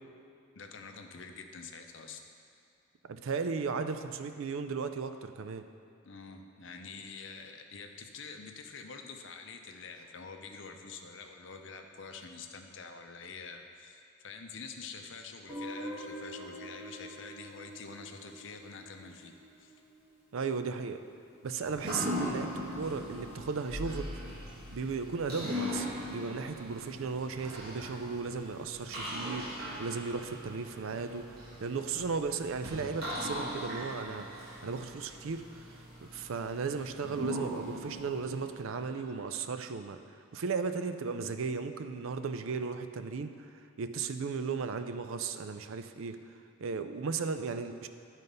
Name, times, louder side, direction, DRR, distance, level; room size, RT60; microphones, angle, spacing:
voice 1, 0.6-2.2 6.0-19.3 19.6-19.8, left 5 dB, 60° left, 5 dB, 0.6 m, -46 dB
voice 2, 3.1-5.7 20.3-21.0 21.4-24.1 24.7-31.3 31.6-35.4 36.0-40.0 40.3-43.3 43.8-46.2 46.6-47.9, right 5 dB, 70° right, 9 dB, 0.4 m, -35 dB
Guitar, 15.5-20.4, equal, 10° right, 1.3 m, -45 dB
sound 1, 21.6-39.5, left 1 dB, 45° right, 1.5 m, -40 dB
11.0 x 4.1 x 5.3 m, 2.6 s
head